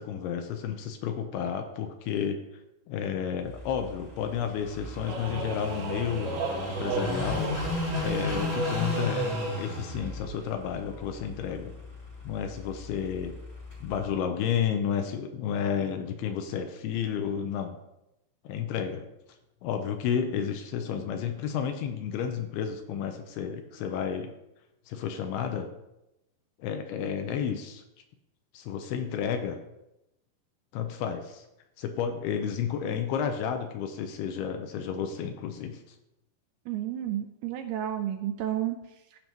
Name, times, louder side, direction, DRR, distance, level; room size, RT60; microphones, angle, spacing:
voice 1, 0.0-2.4 2.9-6.4 6.8-7.5 8.0-11.7 12.2-13.3 13.8-17.8 18.4-19.1 19.6-24.3 24.9-25.7 26.6-27.8 28.5-29.6 30.7-31.4 31.8-35.8, left 8 dB, 80° left, 6 dB, 2.5 m, -31 dB
Car passing by / Idling, 3.4-14.1, left 1 dB, 15° left, 2.9 m, -35 dB
sound 1, 5.1-9.7, right 3 dB, 65° right, 2.3 m, -34 dB
voice 2, 36.7-38.8, right 11 dB, 85° right, 6 dB, 2.3 m, -31 dB
15.0 x 5.4 x 3.1 m, 0.89 s
omnidirectional pair, 4.9 m